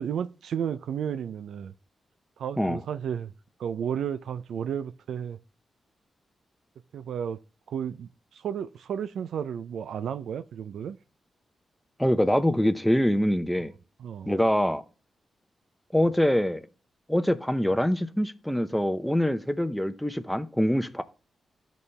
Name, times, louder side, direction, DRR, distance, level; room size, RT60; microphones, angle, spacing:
voice 1, 0.0-1.7 2.4-3.3 3.6-5.4 6.9-7.4 7.7-11.0 14.0-14.3, right 8 dB, 85° right, 0.3 m, -33 dB
voice 2, 12.0-13.7 14.3-14.8 15.9-16.6 17.1-21.0, equal, 5° left, 0.7 m, -24 dB
12.5 x 4.2 x 3.2 m
cardioid pair, 70°, 0 cm